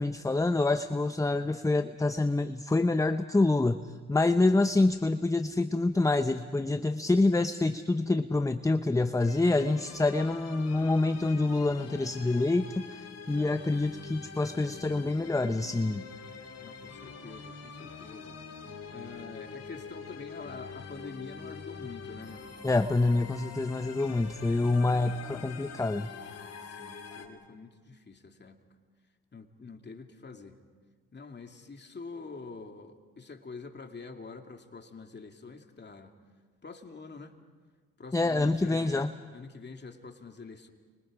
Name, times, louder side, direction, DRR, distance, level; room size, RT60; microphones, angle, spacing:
voice 1, 0.0-16.0 22.6-26.1 38.1-39.1, left 2 dB, 10° left, 10 dB, 0.8 m, -27 dB
sound 1, 9.2-27.3, left 5 dB, 55° left, 3.3 m, -45 dB
voice 2, 16.6-18.4 18.9-22.5 26.6-28.6 29.3-30.6 31.1-36.1 36.6-37.3 38.0-40.7, left 4 dB, 35° left, 4 dB, 2.6 m, -46 dB
29.5 x 25.5 x 5.0 m, 1.5 s
supercardioid pair, 55°, 31 cm